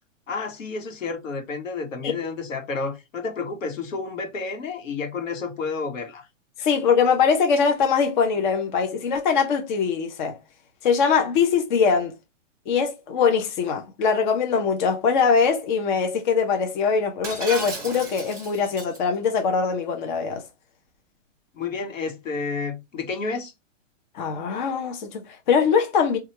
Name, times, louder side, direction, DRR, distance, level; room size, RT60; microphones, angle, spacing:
voice 1, 0.3-6.3 21.5-23.5, left 4 dB, 80° left, 1.2 m, -30 dB
voice 2, 6.6-10.4 10.8-12.2 12.7-20.4 24.1-26.2, left 6 dB, 40° left, 0.6 m, -22 dB
Shatter, 17.2-19.0, right 2 dB, 5° right, 0.9 m, -34 dB
3.1 x 2.4 x 2.8 m
hypercardioid pair, 155°, 38 cm